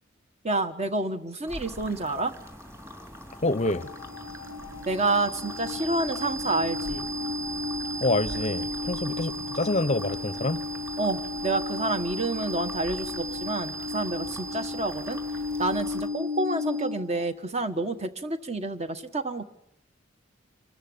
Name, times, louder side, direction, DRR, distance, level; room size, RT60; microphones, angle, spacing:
voice 1, 0.4-2.3 4.9-7.1 11.0-15.2 15.6-19.5, right 2 dB, 35° right, 1.5 m, -29 dB
sound 1, 1.5-16.1, equal, 15° right, 3.3 m, -44 dB
sound 2, 3.3-17.2, left 2 dB, 80° right, 4.1 m, -34 dB
voice 2, 3.4-3.9 8.0-10.6, left 2 dB, 35° left, 0.7 m, -27 dB
26.5 x 13.5 x 8.6 m
head